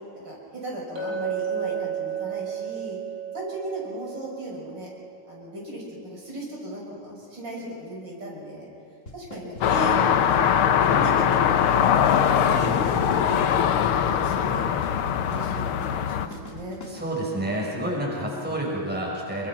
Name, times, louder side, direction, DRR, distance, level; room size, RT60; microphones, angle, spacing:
voice 1, 0.2-3.0 3.3-4.9 5.3-8.7 9.1-10.5 10.9-12.0 12.4-13.6 13.9-14.6 15.3-16.8, right 1 dB, 55° right, -4 dB, 7.0 m, -36 dB
Chink clink, 1.0-5.1, right 8 dB, 35° right, 7.1 m, -32 dB
Drum kit / Snare drum / Bass drum, 9.1-17.0, left 1 dB, 35° left, 2.7 m, -42 dB
sound 1, 9.6-16.3, left 8 dB, 75° left, 1.8 m, -21 dB
voice 2, 16.9-19.5, right 1 dB, 5° right, -3 dB, 5.7 m, -29 dB
27.5 x 24.5 x 6.1 m, 2.7 s
omnidirectional pair, 2.4 m